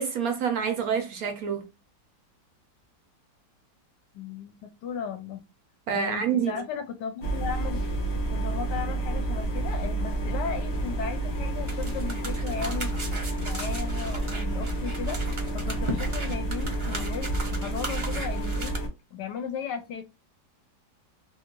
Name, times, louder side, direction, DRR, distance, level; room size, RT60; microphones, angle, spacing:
voice 1, 0.0-1.7 5.9-6.5, right 7 dB, 70° right, 0.8 m, -27 dB
voice 2, 4.1-5.4 5.9-7.9 8.3-13.1 13.3-18.7 19.1-20.0, left 6 dB, 75° left, 1.1 m, -36 dB
sound 1, 7.2-18.9, right 2 dB, 55° left, 0.7 m, -30 dB
sound 2, 11.7-18.8, right 2 dB, 45° right, 0.3 m, -37 dB
2.7 x 2.6 x 2.9 m
omnidirectional pair, 2.0 m